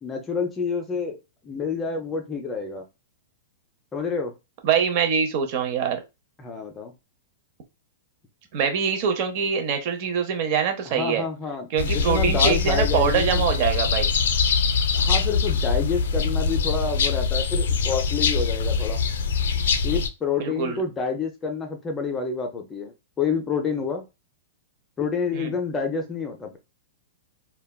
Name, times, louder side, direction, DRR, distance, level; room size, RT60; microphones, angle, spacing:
voice 1, 0.0-2.8 3.9-4.3 6.4-6.9 10.9-13.4 14.9-19.0 19.8-24.0 25.0-26.6, left 5 dB, 15° left, 4 dB, 0.5 m, -28 dB
voice 2, 4.6-6.0 8.5-11.2 11.7-14.1 20.4-20.8 25.3-25.5, right 7 dB, 45° right, 6 dB, 0.7 m, -24 dB
sound 1, 11.8-20.1, left 5 dB, 80° left, 0.4 m, -23 dB
3.3 x 2.2 x 2.2 m, 0.25 s
hypercardioid pair, 155°, 0 cm